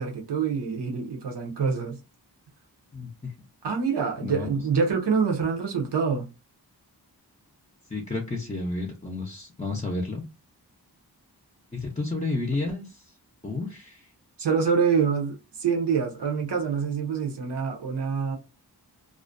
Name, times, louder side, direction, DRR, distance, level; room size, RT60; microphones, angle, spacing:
voice 1, 0.0-2.0 3.6-6.3 14.4-18.4, right 6 dB, 80° right, 0.7 m, -26 dB
voice 2, 2.9-3.3 4.2-4.5 7.9-10.3 11.7-13.0 13.4-14.1, left 2 dB, 20° left, 0.5 m, -31 dB
2.4 x 2.1 x 2.5 m
wide cardioid pair, 55°, 41 cm